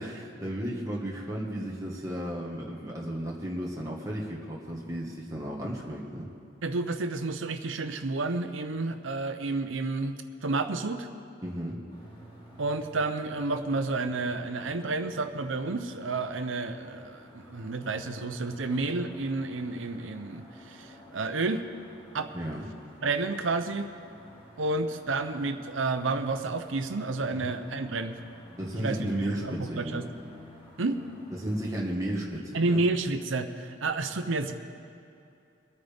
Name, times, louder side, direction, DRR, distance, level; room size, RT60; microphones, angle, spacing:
voice 1, 0.0-6.3 11.4-11.8 22.3-22.6 27.3-27.5 28.6-30.0 31.3-32.8, right 1 dB, 15° right, -3 dB, 1.6 m, -34 dB
voice 2, 6.6-11.1 12.6-21.6 22.1-22.3 23.0-23.9 24.6-28.2 28.7-29.1 29.4-30.1 30.8-31.0 32.5-34.5, right 3 dB, 85° right, 8 dB, 0.8 m, -30 dB
sound 1, 11.9-31.6, equal, 30° left, 3.2 m, -52 dB
23.5 x 9.3 x 3.5 m, 2.6 s
head